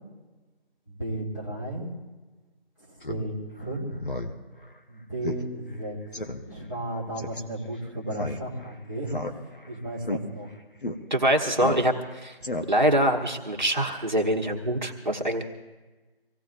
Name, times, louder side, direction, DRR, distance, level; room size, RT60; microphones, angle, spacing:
voice 1, 0.9-1.9 2.8-4.0 4.9-6.2 6.5-10.5, right 1 dB, 20° left, -7 dB, 1.9 m, -34 dB
Speech synthesizer, 3.0-3.2 3.6-3.7 4.0-4.3 4.7-4.8 5.2-5.4 5.7-5.8 6.1-6.4 7.2-7.4 8.1-8.7 9.1-9.7 10.0-10.2 10.8-11.0 11.6-12.1 12.4-13.0, left 2 dB, 55° left, 1.3 m, -32 dB
voice 2, 11.1-12.3 12.7-15.4, right 1 dB, 45° right, 1 dB, 1.3 m, -24 dB
25.5 x 17.0 x 2.6 m, 1.2 s
figure-of-eight pair, 175°, 32 cm